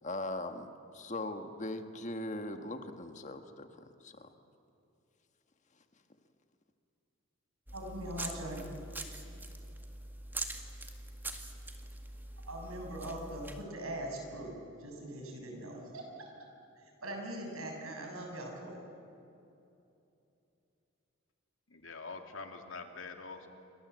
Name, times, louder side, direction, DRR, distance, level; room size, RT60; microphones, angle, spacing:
voice 1, 0.0-4.3, left 1 dB, 35° left, 7 dB, 1.5 m, -40 dB
sound 1, 7.7-13.6, right 2 dB, 10° right, 1.8 m, -43 dB
voice 2, 7.7-8.7 12.5-14.5 14.8-16.3 17.0-18.8, right 1 dB, 85° right, 2 dB, 7.0 m, -41 dB
voice 3, 21.7-23.5, left 4 dB, 70° left, 4 dB, 2.7 m, -45 dB
28.5 x 25.0 x 8.1 m, 2.8 s
head